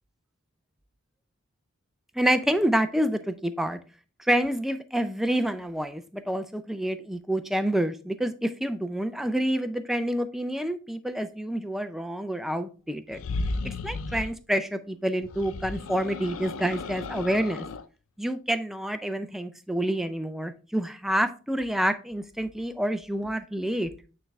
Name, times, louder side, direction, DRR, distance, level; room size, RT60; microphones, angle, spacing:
voice 1, 2.2-3.8 4.2-13.2 13.6-17.6 18.2-23.9, right 1 dB, ahead, 9 dB, 0.4 m, -28 dB
sound 1, 13.1-14.4 15.2-17.8, left 3 dB, 65° left, 0.4 m, -34 dB
8.8 x 3.3 x 3.4 m, 0.34 s
head